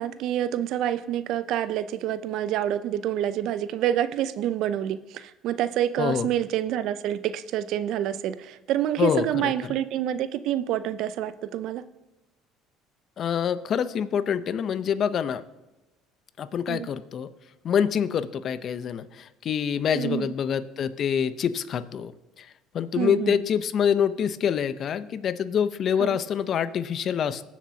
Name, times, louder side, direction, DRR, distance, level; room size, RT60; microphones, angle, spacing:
voice 1, 0.0-11.8 16.7-16.9 19.9-20.3 23.0-23.4 26.0-26.2, right 11 dB, 65° right, 14 dB, 0.5 m, -27 dB
voice 2, 9.0-9.5 13.2-15.4 16.4-17.3 17.6-22.1 22.4-22.5 22.7-27.4, left 8 dB, 50° left, 14 dB, 0.7 m, -26 dB
22.0 x 7.3 x 2.8 m, 1.0 s
hypercardioid pair, 75°, 0 cm